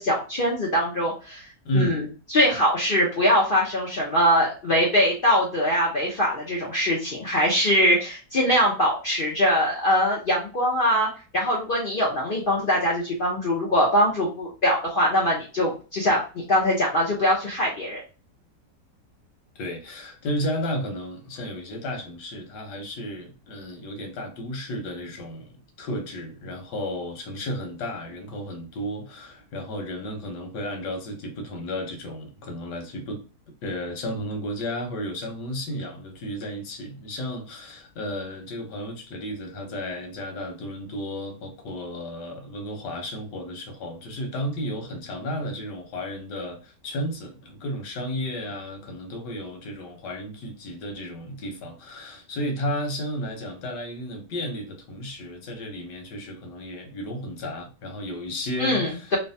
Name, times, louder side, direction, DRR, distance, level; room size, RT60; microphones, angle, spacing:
voice 1, 0.0-1.4 1.7-11.1 11.3-18.0 58.6-59.2, equal, 50° left, 0.6 m, -22 dB
voice 2, 1.6-2.0 19.6-33.2 33.6-59.2, equal, 85° left, 1.5 m, -33 dB
3.2 x 2.2 x 2.6 m
omnidirectional pair, 1.8 m